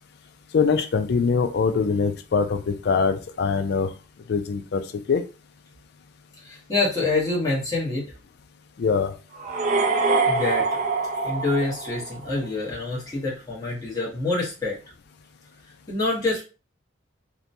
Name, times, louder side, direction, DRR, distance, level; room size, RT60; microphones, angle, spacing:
voice 1, 0.5-3.9 4.3-5.2 8.8-9.1, left 5 dB, 55° left, 9 dB, 0.3 m, -23 dB
voice 2, 6.4-8.0 10.3-10.6 11.2-14.8 15.9-16.4, left 2 dB, 20° left, -6 dB, 1.0 m, -26 dB
sound 1, 9.4-12.4, right 3 dB, 35° right, 0.4 m, -24 dB
2.8 x 2.2 x 2.6 m, 0.33 s
head